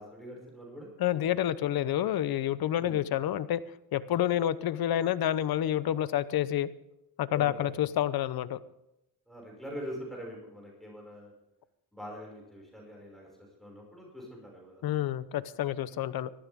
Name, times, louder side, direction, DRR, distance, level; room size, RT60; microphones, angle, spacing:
voice 1, 0.0-0.9 2.8-3.0 7.3-7.7 9.3-11.3 11.9-13.3 13.6-15.0, equal, ahead, -2 dB, 5.9 m, -44 dB
voice 2, 1.0-3.6 3.9-6.7 7.2-8.6 14.8-16.3, left 12 dB, 75° left, 16 dB, 0.8 m, -28 dB
18.5 x 14.0 x 3.6 m, 0.87 s
cardioid pair, 125°, 37 cm